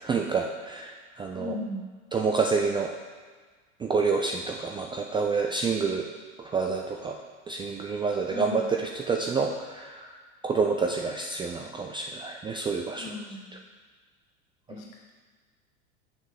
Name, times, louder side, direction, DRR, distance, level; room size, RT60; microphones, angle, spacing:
voice 1, 0.0-1.5 2.1-2.9 3.8-6.0 6.4-7.1 7.5-10.1 10.4-13.1, right 4 dB, 10° right, 2 dB, 0.4 m, -28 dB
voice 2, 1.4-1.9 8.3-8.7 13.0-13.6 14.7-15.2, left 2 dB, 50° left, 0 dB, 2.3 m, -37 dB
6.8 x 6.6 x 5.9 m, 1.5 s
hypercardioid pair, 90°, 41 cm